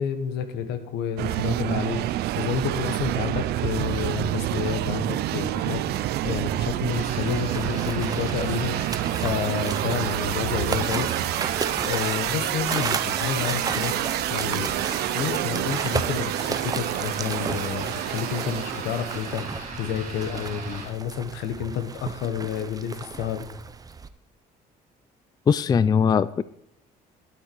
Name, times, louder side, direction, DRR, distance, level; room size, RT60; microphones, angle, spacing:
voice 1, 0.0-8.9 9.2-11.1 11.8-13.9 14.3-14.7 15.1-23.4, left 8 dB, 85° left, 9 dB, 1.4 m, -30 dB
sound 1, 1.2-19.5, right 14 dB, 75° right, 0.5 m, -28 dB
sound 2, 6.9-20.9, right 4 dB, 55° right, 3.3 m, -38 dB
sound 3, 7.2-24.1, right 5 dB, 20° right, 0.6 m, -34 dB
voice 2, 25.5-26.4, left 6 dB, 25° left, 17 dB, 0.3 m, -20 dB
12.0 x 8.2 x 4.7 m, 0.72 s
cardioid pair, 110°, 17 cm